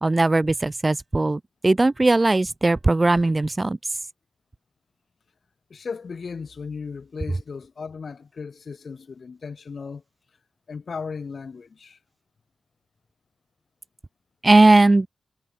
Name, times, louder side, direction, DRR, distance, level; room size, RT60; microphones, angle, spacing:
voice 1, 0.0-3.8 14.4-15.1, right 2 dB, 25° right, 1.8 m, -18 dB
voice 2, 5.7-10.0 10.7-12.0, left 5 dB, 55° left, 7.7 m, -36 dB
wide cardioid pair, 85°, 0 cm